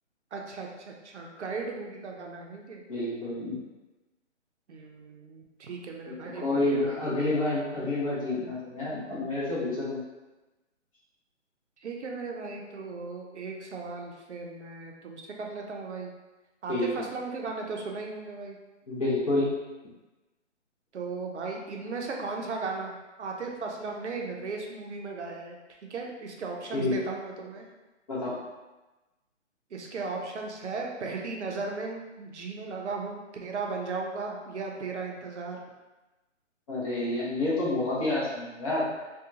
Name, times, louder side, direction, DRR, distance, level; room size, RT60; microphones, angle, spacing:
voice 1, 0.3-2.8 4.7-7.4 11.8-16.1 16.6-18.6 20.9-25.6 25.9-27.6 29.7-35.6, right 4 dB, 70° right, 0 dB, 0.6 m, -36 dB
voice 2, 2.9-3.6 6.3-10.0 16.7-16.9 18.9-19.5 26.7-27.0 28.1-28.4 36.7-38.8, left 2 dB, 30° left, -8 dB, 0.8 m, -28 dB
2.7 x 2.3 x 2.6 m, 1.1 s
hypercardioid pair, 155°, 36 cm